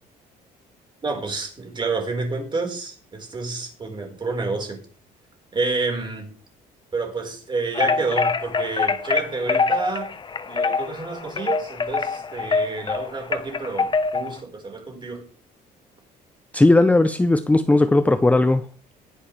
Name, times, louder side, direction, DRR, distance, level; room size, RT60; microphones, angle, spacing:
voice 1, 1.0-4.8 5.5-6.3 6.9-10.1 10.4-15.3, right 3 dB, 25° right, 5.0 m, -29 dB
sound 1, 7.7-14.4, left 4 dB, 30° left, 1.0 m, -24 dB
voice 2, 16.5-18.6, left 2 dB, 10° left, 0.6 m, -17 dB
19.5 x 11.0 x 3.4 m
cardioid pair, 110°, 17 cm